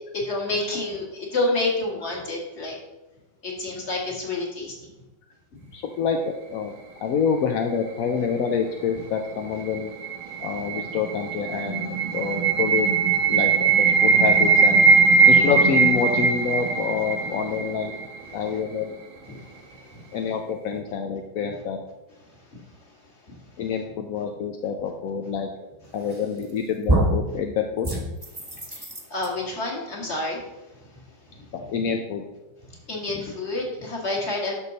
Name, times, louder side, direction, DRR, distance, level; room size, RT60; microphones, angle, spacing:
voice 1, 0.1-2.8 3.4-4.7 19.3-19.4 23.3-23.4 28.7-28.8 29.1-30.4 32.9-34.5, left 2 dB, 40° left, -1 dB, 2.2 m, -28 dB
voice 2, 5.7-6.7 7.0-9.9 10.4-12.9 13.3-14.8 15.3-17.9 18.3-18.9 20.1-21.8 23.6-25.5 25.9-27.9 31.5-32.2, left 6 dB, 60° left, 4 dB, 0.9 m, -27 dB
sound 1, 9.3-18.3, right 5 dB, 90° right, 1.9 m, -20 dB
sound 2, 26.1-26.5 26.9-27.3 27.8-29.3, right 1 dB, 15° right, 1.2 m, -24 dB
11.0 x 6.6 x 4.1 m, 1.0 s
omnidirectional pair, 2.0 m